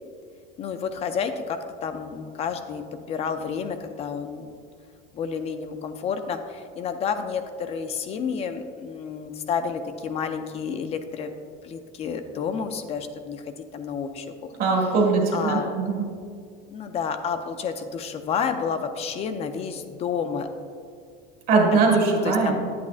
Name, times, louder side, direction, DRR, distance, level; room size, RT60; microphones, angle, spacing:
voice 1, 0.6-4.6 5.1-11.3 11.6-15.0 15.3-15.7 16.7-20.5 21.7-21.8 22.2-22.6, left 6 dB, 30° left, 8 dB, 0.4 m, -30 dB
voice 2, 14.6-16.1 21.5-22.6, right 4 dB, 45° right, 0 dB, 1.8 m, -21 dB
10.0 x 8.5 x 2.4 m, 2.2 s
cardioid pair, 165°, 21 cm